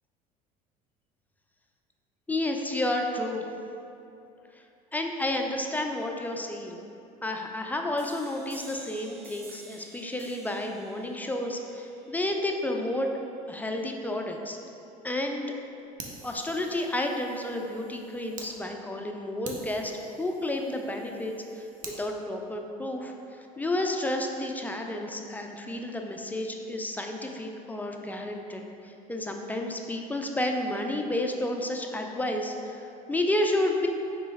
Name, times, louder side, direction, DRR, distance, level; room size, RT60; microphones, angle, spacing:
voice 1, 2.3-3.4 4.9-6.8 7.2-13.1 13.5-14.6 15.0-15.5 16.2-19.9 20.2-21.6 22.0-23.1 23.6-28.6 29.1-32.8 33.1-33.9, left 1 dB, 10° left, 2 dB, 0.3 m, -31 dB
sound 1, 8.0-13.4, right 2 dB, 85° right, 0.8 m, -51 dB
Fire, 16.0-18.5 19.0-19.1 19.4-22.0, right 4 dB, 45° right, 0.7 m, -46 dB
4.4 x 3.0 x 3.4 m, 2.8 s
supercardioid pair, 85°, 19 cm